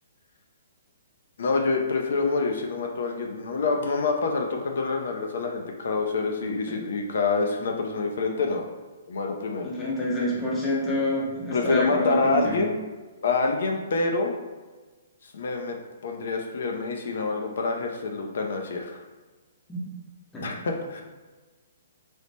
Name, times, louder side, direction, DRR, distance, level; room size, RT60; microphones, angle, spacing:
voice 1, 1.4-8.7 9.1-9.7 11.5-12.7 13.2-14.3 15.2-15.8 16.0-19.0 20.4-21.0, left 3 dB, 60° left, 2 dB, 0.4 m, -26 dB
voice 2, 9.6-12.6 19.7-19.8 20.3-20.5, left 1 dB, 10° left, -6 dB, 0.5 m, -27 dB
3.2 x 2.1 x 4.0 m, 1.3 s
hypercardioid pair, 170°, 0 cm